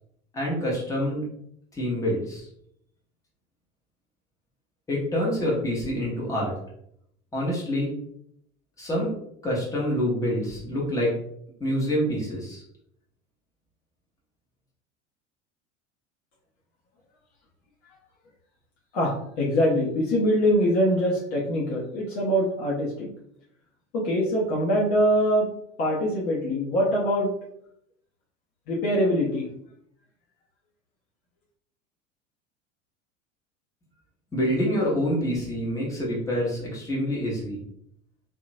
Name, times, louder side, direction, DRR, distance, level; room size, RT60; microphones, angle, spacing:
voice 1, 0.3-1.3 1.7-2.4 4.9-6.5 7.3-7.9 8.8-9.1 9.4-11.1 11.6-12.6 34.3-37.6, equal, 10° left, -4 dB, 0.9 m, -26 dB
voice 2, 18.9-23.1 23.9-25.5 25.8-27.3 28.7-29.5, equal, 40° left, -4 dB, 0.7 m, -23 dB
2.8 x 2.1 x 2.6 m, 0.72 s
figure-of-eight pair, 75°, 37 cm